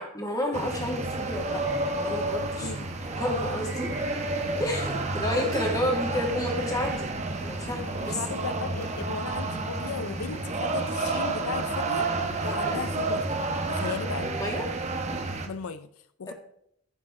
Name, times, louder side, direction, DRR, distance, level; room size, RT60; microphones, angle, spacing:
voice 1, 0.0-1.6 2.0-2.7 3.2-3.9 4.6-7.1 7.4-8.2 12.5-12.8 14.2-14.7 16.3-16.4, left 1 dB, 15° left, 0 dB, 2.4 m, -31 dB
sound 1, 0.5-15.5, right 2 dB, 30° right, 1.1 m, -30 dB
sound 2, 1.2-8.1, right 1 dB, 10° right, 1.5 m, -45 dB
sound 3, 5.5-7.1 7.6-7.7 8.9-9.0, right 4 dB, 90° right, 2.4 m, -48 dB
voice 2, 7.7-12.1 12.4-14.3 15.4-15.9 16.2-16.3, left 5 dB, 80° left, 12 dB, 0.6 m, -36 dB
14.5 x 7.2 x 3.8 m, 0.69 s
head